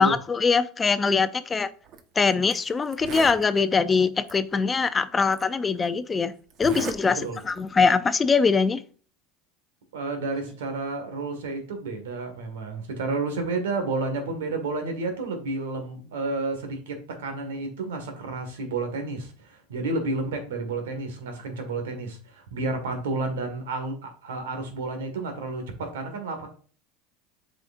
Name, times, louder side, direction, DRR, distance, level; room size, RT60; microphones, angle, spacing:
voice 1, 0.0-1.7 2.2-6.3 6.6-7.2 7.4-8.8, left 5 dB, 20° left, 0.5 m, -22 dB
Zipper (clothing), 1.8-2.0 2.5-2.6 2.9-3.4 4.3-4.4 5.3-5.4 6.5-7.0 7.3-7.7, right 6 dB, 50° right, 1.0 m, -35 dB
voice 2, 9.9-26.5, right 3 dB, 85° right, 1.8 m, -31 dB
8.1 x 5.0 x 2.6 m
supercardioid pair, 100°, 0 cm